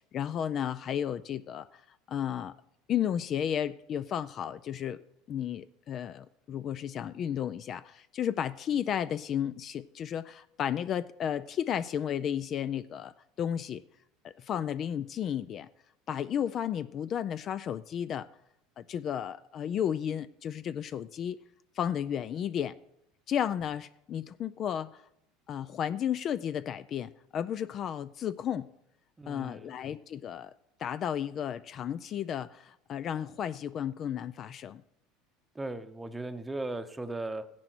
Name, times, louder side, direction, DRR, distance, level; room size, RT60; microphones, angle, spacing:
voice 1, 0.0-1.8 2.1-2.5 2.9-5.0 5.3-13.8 14.2-15.7 16.1-18.3 18.8-21.4 21.8-22.8 23.3-25.0 25.5-28.7 29.3-30.5 30.8-34.8, left 9 dB, 40° left, 15 dB, 0.4 m, -33 dB
voice 2, 29.2-29.7 35.5-37.4, right 2 dB, 10° right, 10 dB, 0.8 m, -37 dB
15.0 x 10.5 x 4.5 m, 0.79 s
supercardioid pair, 135°, 0 cm